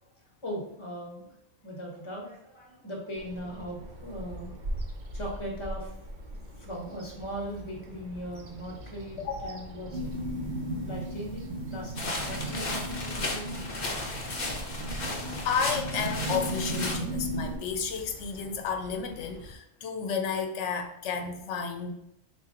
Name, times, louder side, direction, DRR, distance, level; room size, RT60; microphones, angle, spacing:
voice 1, 0.0-1.3 1.6-4.5 5.1-5.9 6.6-10.1 10.8-14.1, equal, 25° left, -1 dB, 1.0 m, -39 dB
Bird vocalization bird call bird song, 3.1-19.6, right 1 dB, 50° right, 0.7 m, -43 dB
voice 2, 9.2-9.6 15.4-21.9, left 6 dB, 90° left, 4 dB, 0.9 m, -32 dB
sound 1, 9.9-17.6, right 1 dB, 75° right, 1.1 m, -36 dB
sound 2, 11.9-16.9, left 2 dB, 45° left, 0.7 m, -35 dB
4.4 x 2.5 x 3.6 m, 0.78 s
omnidirectional pair, 1.2 m